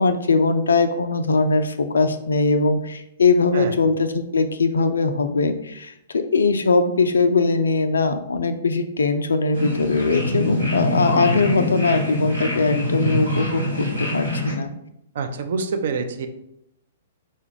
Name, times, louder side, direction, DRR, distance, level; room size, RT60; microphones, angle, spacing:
voice 1, 0.0-14.7, left 3 dB, 65° left, 8 dB, 0.3 m, -21 dB
sound 1, 9.5-14.5, left 1 dB, 85° right, 1.2 m, -24 dB
voice 2, 15.1-16.3, right 4 dB, 55° right, 7 dB, 0.4 m, -26 dB
4.3 x 2.3 x 3.3 m, 0.78 s
figure-of-eight pair, 110°, 0 cm